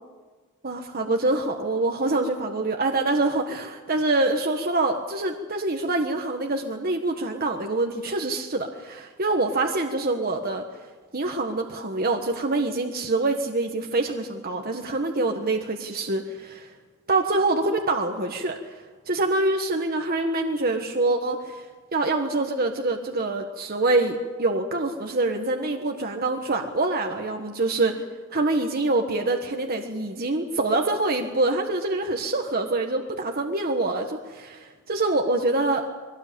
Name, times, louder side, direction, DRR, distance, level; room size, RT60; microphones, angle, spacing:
voice 1, 0.6-10.6 11.1-16.7 17.1-18.6 19.1-21.7 21.9-27.9 28.3-35.8, right 2 dB, 45° right, 3 dB, 1.4 m, -25 dB
22.5 x 18.0 x 8.6 m, 1.4 s
head